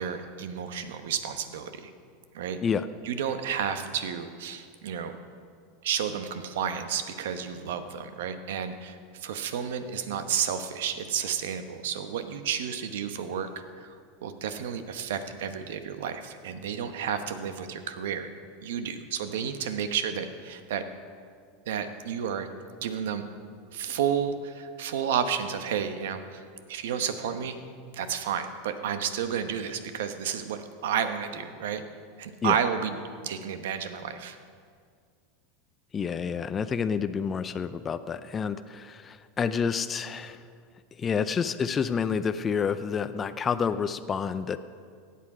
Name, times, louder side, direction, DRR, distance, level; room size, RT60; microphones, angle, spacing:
voice 1, 0.0-1.9 2.3-2.6 3.0-5.1 5.8-13.9 14.2-18.3 18.6-20.8 21.7-22.5 22.8-23.2 23.7-26.4 26.7-27.6 27.9-31.8 32.2-34.4, right 8 dB, 80° right, 9 dB, 1.0 m, -31 dB
voice 2, 35.9-40.4 41.0-44.6, left 6 dB, 25° left, 11 dB, 0.4 m, -29 dB
16.0 x 8.5 x 4.9 m, 2.1 s
supercardioid pair, 120°, 0 cm